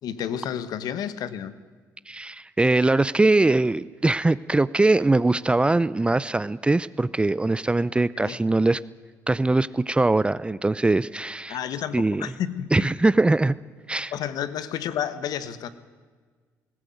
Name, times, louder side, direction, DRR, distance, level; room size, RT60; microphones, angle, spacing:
voice 1, 0.0-1.5 8.2-8.4 11.5-12.9 14.1-15.7, left 9 dB, 70° left, 14 dB, 1.3 m, -31 dB
voice 2, 2.1-8.8 9.3-11.6 11.9-12.2 12.7-13.5 13.9-14.1, right 2 dB, 15° right, 17 dB, 0.5 m, -21 dB
19.5 x 16.0 x 9.3 m, 1.5 s
supercardioid pair, 70°, 7 cm